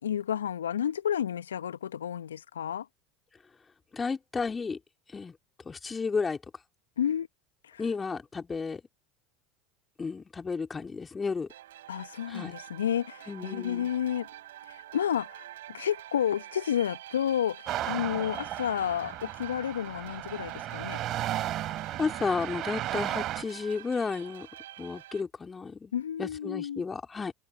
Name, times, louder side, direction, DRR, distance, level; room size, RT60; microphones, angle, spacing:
voice 1, 0.0-2.9 7.0-7.3 7.6-7.8 11.9-14.3 14.7-21.0 25.9-26.8, left 9 dB, 80° left, 1.3 m, -31 dB
voice 2, 3.9-4.8 5.1-5.3 5.6-6.4 7.8-8.8 10.0-11.5 12.3-12.6 13.3-13.9 21.4-21.7 22.0-24.5 24.8-25.9 26.2-27.3, left 4 dB, 20° left, 3.4 m, -32 dB
sound 1, 11.5-25.2, right 14 dB, 70° right, 4.6 m, -47 dB
sound 2, 17.6-23.4, right 13 dB, 45° right, 3.1 m, -34 dB
figure-of-eight pair, 70°, 0 cm